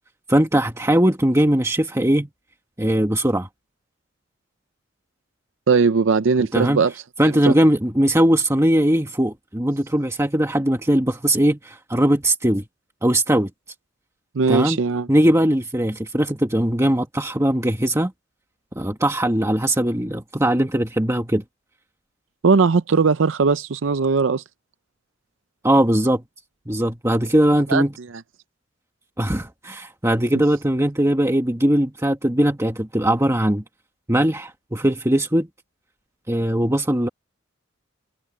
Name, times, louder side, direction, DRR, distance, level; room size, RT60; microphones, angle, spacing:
voice 1, 0.3-2.3 2.8-3.5 6.5-6.8 7.2-12.6 13.0-13.5 14.5-14.8 15.1-18.1 18.8-21.4 25.6-26.2 26.7-27.9 29.2-33.6 34.1-35.5 36.3-37.1, right 1 dB, 15° right, 1.7 m, -20 dB
voice 2, 5.7-6.9 7.2-7.5 14.3-15.1 22.4-24.4 27.7-28.2, right 4 dB, 75° right, 0.6 m, -19 dB
head